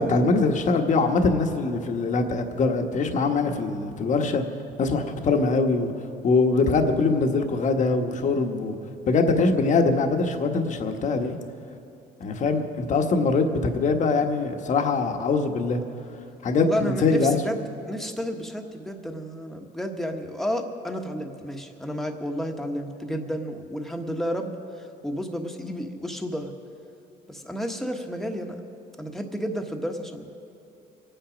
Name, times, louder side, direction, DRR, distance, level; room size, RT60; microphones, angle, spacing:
voice 1, 0.0-4.4 4.8-5.9 6.2-8.7 9.1-11.3 12.2-15.8 16.4-17.4, left 3 dB, 45° left, 5 dB, 1.3 m, -23 dB
voice 2, 16.6-24.5 24.8-26.5 27.3-28.6 29.0-30.3, equal, ahead, 3 dB, 1.3 m, -31 dB
24.5 x 9.1 x 5.1 m, 2.7 s
cardioid pair, 110°, 17 cm